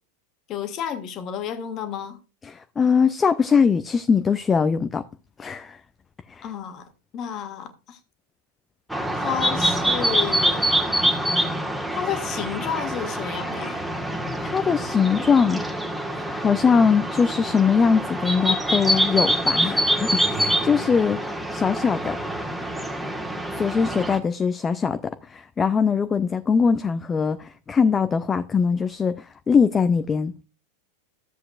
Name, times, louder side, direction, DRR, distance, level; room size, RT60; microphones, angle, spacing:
voice 1, 0.5-2.2 6.4-6.9 7.1-8.0 9.2-10.7 11.9-13.9, left 9 dB, 35° left, 1.8 m, -31 dB
voice 2, 2.4-5.0 5.4-5.8 6.3-6.4 14.4-15.6 16.1-21.2 21.5-22.2 23.6-30.3, left 6 dB, 20° left, 0.5 m, -21 dB
sound 1, 8.9-24.2, equal, ahead, 1.4 m, -25 dB
14.0 x 7.7 x 2.4 m
figure-of-eight pair, 90°, 0 cm